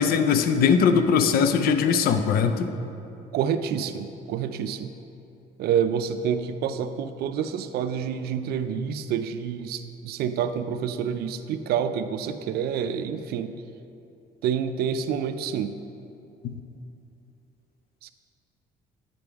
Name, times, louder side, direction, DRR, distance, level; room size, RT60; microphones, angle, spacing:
voice 1, 0.0-2.7 16.4-16.6, left 6 dB, 65° left, 9 dB, 0.5 m, -21 dB
voice 2, 3.3-4.9 5.6-13.5 14.4-15.8 18.0-18.1, right 8 dB, 70° right, 10 dB, 0.4 m, -28 dB
8.5 x 5.0 x 3.5 m, 2.7 s
cardioid pair, 110°, 17 cm